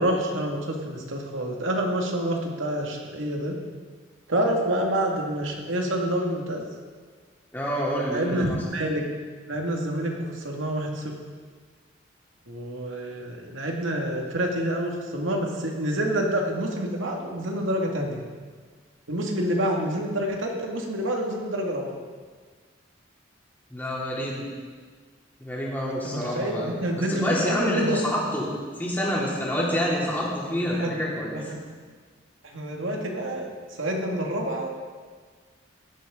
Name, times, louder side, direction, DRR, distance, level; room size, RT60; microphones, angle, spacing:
voice 1, 0.0-3.6 4.3-6.6 8.1-9.1 9.5-11.2 12.5-18.2 19.1-21.9 25.9-28.0 30.7-30.9 31.3-31.6 32.5-33.5 33.8-34.7, right 1 dB, 90° right, 1 dB, 2.2 m, -27 dB
voice 2, 7.5-8.4 23.7-24.5 25.4-26.7 27.1-28.5 28.8-31.5, equal, 10° left, -6 dB, 3.0 m, -27 dB
17.0 x 12.0 x 3.8 m, 1.5 s
head